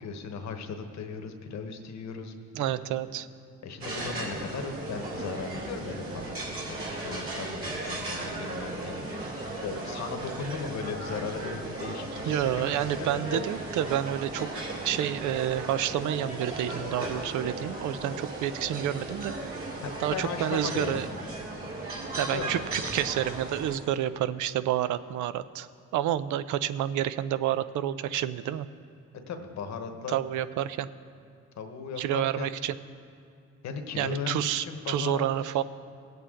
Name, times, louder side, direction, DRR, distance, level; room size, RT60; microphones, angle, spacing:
voice 1, 0.0-2.7 3.6-9.1 9.6-13.4 19.8-21.0 22.3-22.6 29.3-30.1 31.6-32.5 33.6-35.5, left 5 dB, 65° left, 5 dB, 1.2 m, -37 dB
voice 2, 2.5-3.3 12.3-14.5 14.8-19.4 20.0-21.1 22.2-25.7 25.9-28.7 30.1-30.9 32.0-32.7 34.0-35.6, right 11 dB, 80° right, 14 dB, 0.5 m, -29 dB
sound 1, 3.8-23.8, right 2 dB, 45° right, 2.4 m, -36 dB
17.0 x 8.0 x 3.8 m, 2.4 s
cardioid pair, 90°, 30 cm